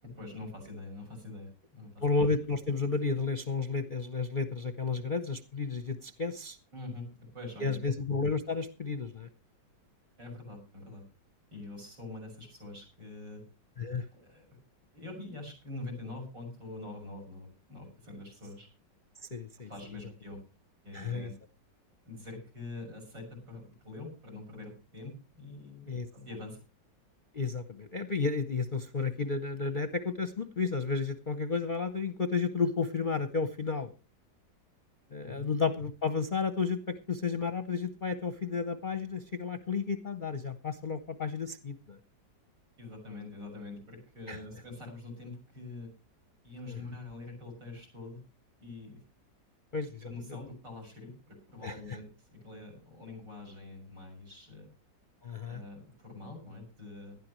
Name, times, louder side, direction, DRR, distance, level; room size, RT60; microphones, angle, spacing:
voice 1, 0.0-2.1 6.7-7.8 10.2-11.0 11.5-13.4 14.1-14.5 14.9-18.7 19.6-20.4 20.8-21.3 22.0-26.6 35.2-35.4 42.8-45.9 46.4-48.2 48.6-49.0 50.0-54.7 55.5-57.2, left 2 dB, 75° right, 6 dB, 7.3 m, -45 dB
voice 2, 2.0-6.6 7.6-9.3 13.8-14.0 19.3-19.7 20.9-21.3 25.9-26.1 27.3-33.9 35.1-42.0 44.3-44.4 46.7-46.8 49.7-50.1 51.6-52.0 55.2-55.6, left 4 dB, 45° left, 9 dB, 0.6 m, -32 dB
19.0 x 12.5 x 3.1 m, 0.31 s
omnidirectional pair, 2.0 m